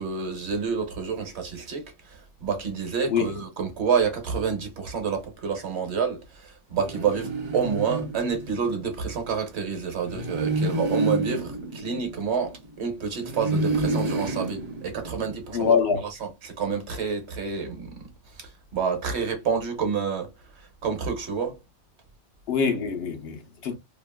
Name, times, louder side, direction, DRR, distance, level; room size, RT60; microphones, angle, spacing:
voice 1, 0.0-15.7 16.2-18.1 18.4-20.3 20.6-21.6, right 6 dB, 65° right, 1.1 m, -28 dB
sound 1, 6.8-8.9 10.0-12.7 13.2-15.5, right 2 dB, 45° right, 0.6 m, -29 dB
voice 2, 15.5-16.0 22.5-23.8, left 6 dB, 60° left, 0.9 m, -24 dB
2.9 x 2.4 x 2.2 m
omnidirectional pair, 1.2 m